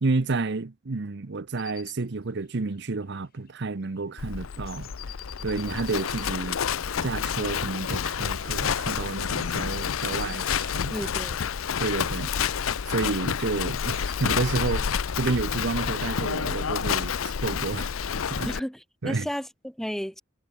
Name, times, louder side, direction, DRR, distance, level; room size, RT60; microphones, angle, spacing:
voice 1, 0.0-4.9 5.4-6.6 7.0-11.1 11.8-12.3 12.9-17.9 18.3-18.5 19.0-19.3, right 3 dB, 60° right, 0.8 m, -30 dB
sound 1, 1.6-2.0 2.3-2.4 2.6-2.7 2.9-4.0 4.5-6.3 8.9-10.9 13.5-16.6, left 13 dB, 50° left, 1.8 m, -46 dB
Livestock farm animals working animals, 4.2-18.6, left 7 dB, 90° left, 0.6 m, -29 dB
voice 2, 10.9-11.5 18.5-20.2, equal, ahead, 0.8 m, -33 dB
head